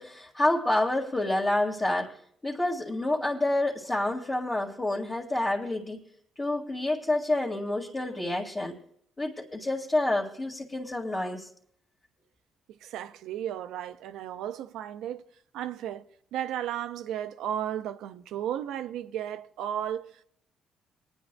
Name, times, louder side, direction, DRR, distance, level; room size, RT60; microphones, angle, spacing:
voice 1, 0.0-2.2 2.4-6.0 6.4-8.8 9.2-11.5, left 1 dB, 30° left, 1.8 m, -28 dB
voice 2, 12.8-15.2 15.5-16.0 16.3-20.1, right 10 dB, 90° right, 0.5 m, -34 dB
26.0 x 9.8 x 2.2 m
cardioid pair, 90°, 0 cm